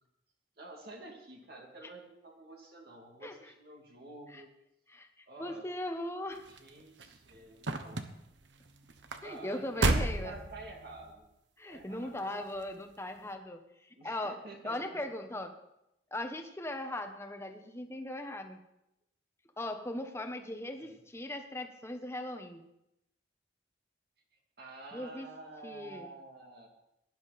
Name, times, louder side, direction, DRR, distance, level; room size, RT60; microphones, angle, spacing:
voice 1, 0.6-4.5 5.3-5.6 6.5-8.0 9.2-11.3 11.7-12.4 14.0-15.0 20.7-21.0 24.3-26.7, right 2 dB, 60° right, 0 dB, 2.5 m, -50 dB
voice 2, 4.9-6.5 9.2-10.4 11.6-15.5 16.1-18.6 19.6-22.6 24.9-25.3 25.6-26.1, left 1 dB, 15° left, 6 dB, 1.2 m, -39 dB
sound 1, 6.3-11.1 11.8-12.2 12.6-12.7, right 2 dB, 80° right, 1.1 m, -33 dB
17.5 x 10.5 x 4.3 m, 0.84 s
head